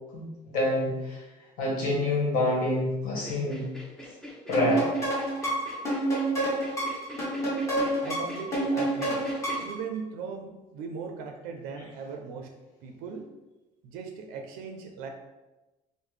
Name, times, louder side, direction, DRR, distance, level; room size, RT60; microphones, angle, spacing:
voice 1, 0.5-1.2 1.6-3.6 4.5-4.9, left 1 dB, 65° left, -3 dB, 1.2 m, -26 dB
sound 1, 3.3-9.7, left 1 dB, 5° left, 0.4 m, -43 dB
sound 2, 4.5-9.8, right 1 dB, 20° left, 1.0 m, -28 dB
voice 2, 8.0-9.3 9.6-12.5 12.8-13.3 13.8-15.1, right 5 dB, 90° right, 4 dB, 0.4 m, -38 dB
3.6 x 2.0 x 3.1 m, 1.1 s
cardioid pair, 140°, 15 cm